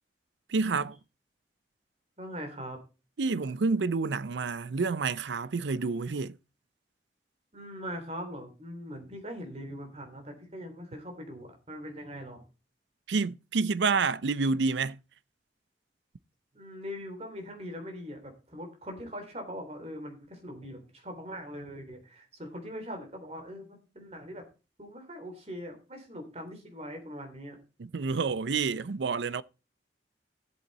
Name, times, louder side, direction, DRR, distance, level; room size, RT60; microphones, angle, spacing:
voice 1, 0.5-1.0 3.2-6.4 13.1-15.0 27.8-29.4, right 4 dB, 80° right, 0.5 m, -28 dB
voice 2, 2.2-2.8 7.5-12.4 16.5-24.4 24.8-27.6, equal, 35° right, 3.2 m, -41 dB
13.5 x 7.7 x 4.1 m
head